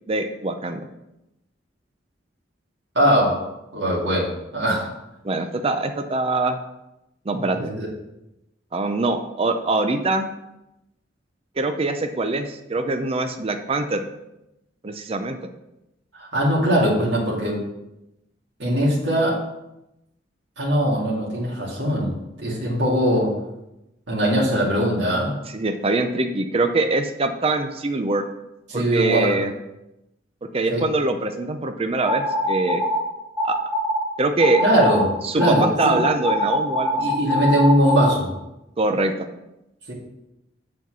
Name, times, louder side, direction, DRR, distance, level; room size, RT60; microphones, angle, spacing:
voice 1, 0.1-0.9 5.2-6.6 7.3-7.7 8.7-10.3 11.6-14.1 14.8-15.4 25.5-28.2 28.7-29.5 30.5-32.8 33.4-33.6 34.2-34.6 35.2-36.9 38.8-39.1, right 2 dB, 30° right, 7 dB, 0.5 m, -23 dB
voice 2, 3.0-4.9 7.5-7.9 16.1-17.6 18.6-19.4 20.6-23.3 24.1-25.3 28.7-29.4 30.7-30.8 34.6-35.0 35.4-35.9 37.0-38.3 39.9-40.0, equal, 70° right, -5 dB, 2.3 m, -21 dB
sound 1, 32.1-33.0 33.4-34.0 34.4-35.0 35.4-38.1, equal, 10° right, 2.6 m, -23 dB
8.2 x 4.5 x 6.1 m, 0.90 s
head